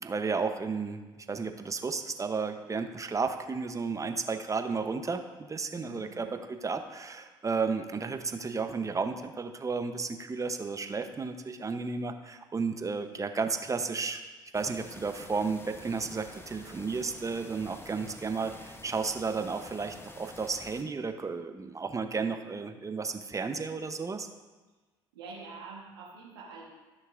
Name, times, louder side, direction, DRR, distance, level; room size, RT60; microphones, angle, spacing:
voice 1, 0.0-14.2 14.5-24.3, right 4 dB, 25° right, 7 dB, 0.8 m, -33 dB
voice 2, 5.8-6.4 25.1-26.6, right 4 dB, 90° right, -5 dB, 1.2 m, -46 dB
sound 1, 14.5-20.8, left 2 dB, 20° left, 0.9 m, -49 dB
13.5 x 6.4 x 2.5 m, 1.3 s
hypercardioid pair, 55°, 12 cm